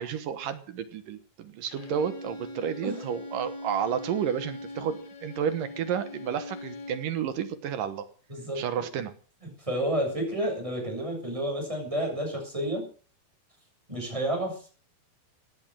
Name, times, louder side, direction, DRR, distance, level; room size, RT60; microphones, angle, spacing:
voice 1, 0.0-8.1 8.6-9.1, right 8 dB, 70° right, 11 dB, 2.8 m, -31 dB
Bowed string instrument, 1.7-7.2, left 1 dB, 90° left, 5.8 m, -41 dB
voice 2, 8.3-8.8 9.4-12.9 13.9-14.7, right 1 dB, 10° right, 2 dB, 6.7 m, -31 dB
16.5 x 9.8 x 6.3 m, 0.40 s
omnidirectional pair, 4.3 m